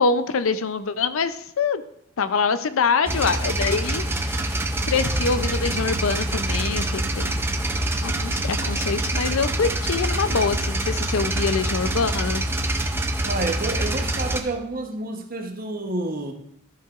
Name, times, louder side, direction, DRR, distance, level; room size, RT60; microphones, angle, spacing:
voice 1, 0.0-1.8 2.2-4.5 4.9-7.3 8.0-12.5, left 5 dB, 75° left, 12 dB, 0.5 m, -24 dB
sound 1, 3.1-14.4, right 1 dB, 10° right, 0.5 m, -25 dB
Bass guitar, 5.0-14.9, right 1 dB, 10° left, 2.9 m, -42 dB
voice 2, 13.2-16.3, right 2 dB, 40° right, 4 dB, 1.0 m, -29 dB
13.0 x 7.5 x 2.5 m, 0.73 s
head